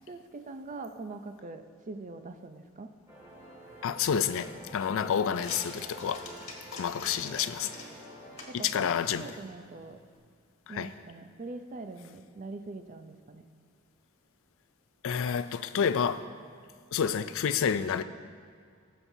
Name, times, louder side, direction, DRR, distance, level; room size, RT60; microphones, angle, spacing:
voice 1, 0.1-2.9 7.0-7.3 8.5-8.9 9.2-10.0 10.7-13.4, right 3 dB, 35° right, 0.5 m, -43 dB
sound 1, 3.1-8.4, right 1 dB, 15° right, 1.9 m, -48 dB
sound 2, 3.3-10.2, left 3 dB, 30° left, 1.5 m, -49 dB
voice 2, 3.8-6.3 6.7-7.7 8.5-9.3 10.7-10.9 15.0-16.3 16.9-18.0, left 7 dB, 65° left, 0.4 m, -29 dB
18.5 x 7.1 x 2.7 m
head